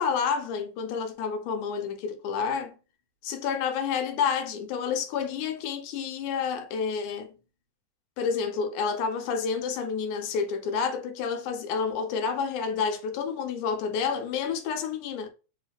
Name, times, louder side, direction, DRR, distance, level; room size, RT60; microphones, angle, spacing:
voice 1, 0.0-2.7 3.2-7.3 8.2-15.3, left 6 dB, 85° left, 2.2 m, -29 dB
4.8 x 2.3 x 3.3 m
omnidirectional pair, 3.5 m